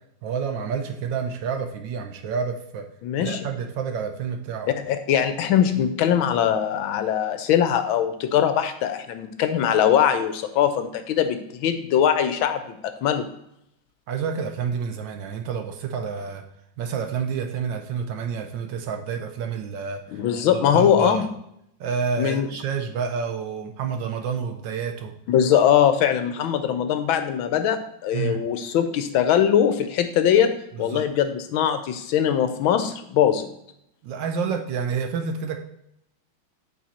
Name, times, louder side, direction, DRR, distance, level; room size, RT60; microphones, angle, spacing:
voice 1, 0.2-2.9 3.2-4.7 14.1-16.4 16.8-20.2 20.5-21.2 21.8-25.1 28.1-28.4 30.7-31.0 34.0-35.6, right 6 dB, 70° right, 4 dB, 1.3 m, -29 dB
voice 2, 3.0-3.4 4.9-13.3 20.1-21.3 22.2-22.5 25.3-30.5 30.8-33.5, left 9 dB, 75° left, 9 dB, 1.4 m, -21 dB
8.5 x 4.2 x 4.3 m, 0.76 s
omnidirectional pair, 2.3 m